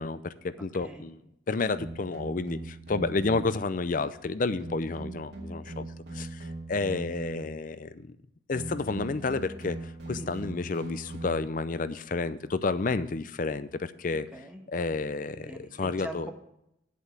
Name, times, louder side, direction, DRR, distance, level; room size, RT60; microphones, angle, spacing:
voice 1, 0.0-5.9 6.1-8.1 8.5-14.3 14.7-16.3, left 3 dB, 45° left, 14 dB, 0.5 m, -31 dB
sound 1, 1.7-3.6 4.6-7.7 8.5-11.7, right 2 dB, 55° right, 2.7 m, -40 dB
voice 2, 14.1-14.6 15.4-16.3, right 1 dB, 5° right, 2 dB, 1.3 m, -43 dB
8.3 x 7.7 x 6.0 m, 0.81 s
head